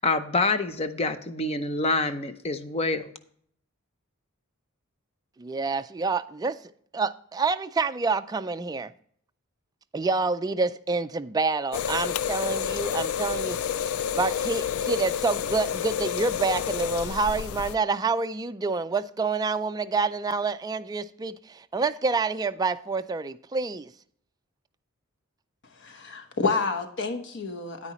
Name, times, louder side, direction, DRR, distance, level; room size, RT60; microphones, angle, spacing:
voice 1, 0.0-3.1, left 3 dB, 30° left, 0.6 m, -26 dB
voice 2, 5.4-6.5 6.9-8.9 9.9-23.9, right 4 dB, 20° right, 0.3 m, -28 dB
sound 1, 11.7-17.8, left 8 dB, 85° left, 0.3 m, -29 dB
voice 3, 25.7-27.9, left 4 dB, 60° left, 1.0 m, -29 dB
9.6 x 9.0 x 3.0 m
head